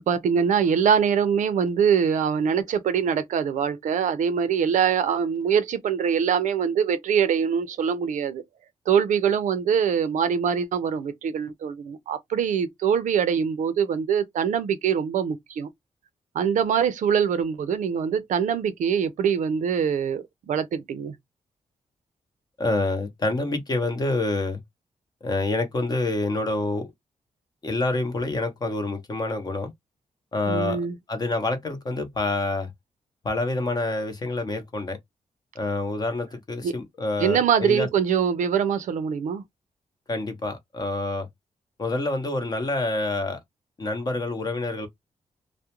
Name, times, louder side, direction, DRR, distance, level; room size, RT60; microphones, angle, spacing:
voice 1, 0.0-8.4 8.9-15.7 16.3-21.1 30.5-31.0 36.6-36.7 37.2-39.4, right 7 dB, 80° right, 0.5 m, -23 dB
voice 2, 22.6-24.6 25.2-26.9 27.6-29.7 30.3-32.7 33.2-35.0 35.6-37.9 40.1-41.3 41.8-43.4 43.8-44.9, left 2 dB, 30° left, 0.7 m, -27 dB
2.3 x 2.1 x 2.8 m
wide cardioid pair, 160°, 13 cm